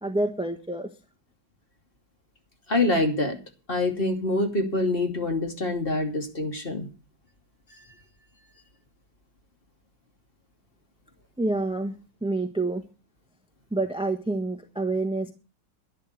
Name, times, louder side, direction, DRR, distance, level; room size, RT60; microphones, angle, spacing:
voice 1, 0.0-0.9 11.4-12.8 13.7-15.3, right 2 dB, 5° right, 6 dB, 1.1 m, -28 dB
voice 2, 2.7-3.4 3.7-6.9, left 2 dB, 30° left, 4 dB, 2.9 m, -25 dB
11.5 x 11.5 x 6.6 m, 0.32 s
omnidirectional pair, 1.8 m